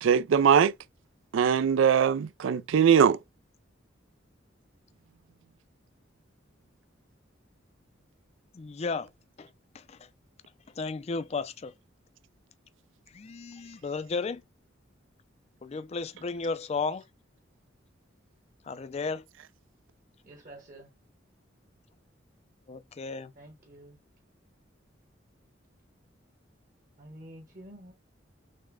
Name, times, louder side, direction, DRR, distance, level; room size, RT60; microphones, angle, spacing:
voice 1, 0.0-0.7 1.3-3.2, right 7 dB, 80° right, 0.3 m, -21 dB
voice 2, 8.5-9.1 9.4-9.5 9.7-10.1 10.8-11.7 13.1-14.4 15.6-17.0 18.6-19.2 22.7-23.3, left 4 dB, 35° left, 0.4 m, -34 dB
voice 3, 20.2-20.9 23.4-24.0 27.0-27.9, right 1 dB, 45° right, 1.1 m, -48 dB
6.4 x 2.2 x 3.6 m
head